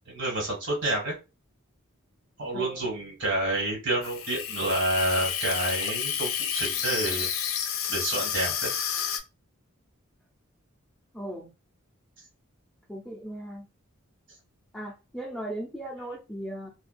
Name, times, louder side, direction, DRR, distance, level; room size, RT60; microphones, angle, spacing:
voice 1, 0.1-1.1 2.4-7.3 7.9-8.7, right 1 dB, 60° right, -3 dB, 1.5 m, -29 dB
voice 2, 2.5-2.9 11.1-11.5 12.9-13.7 14.7-16.7, right 1 dB, ahead, -5 dB, 0.5 m, -37 dB
Water tap faucet / Sink (filling or washing), 4.0-9.2, left 8 dB, 75° left, 0.4 m, -30 dB
2.5 x 2.2 x 2.2 m, 0.28 s
head